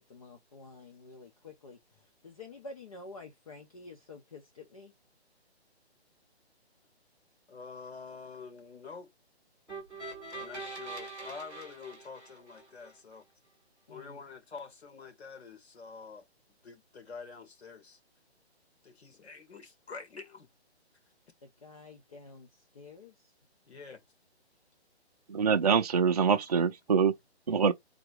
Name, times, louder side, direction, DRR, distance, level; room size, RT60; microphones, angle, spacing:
voice 1, 0.0-4.9 13.9-14.2 21.4-23.3, left 3 dB, 35° left, 0.9 m, -49 dB
voice 2, 7.5-9.1 10.4-13.2 13.9-16.2 16.6-18.0 18.8-20.5 23.7-24.0, left 5 dB, 70° left, 2.1 m, -47 dB
sound 1, 9.7-12.9, right 3 dB, 5° left, 0.7 m, -43 dB
voice 3, 25.3-27.1 27.5-27.7, right 6 dB, 35° right, 0.5 m, -25 dB
3.9 x 2.9 x 4.7 m
hypercardioid pair, 170°, 33 cm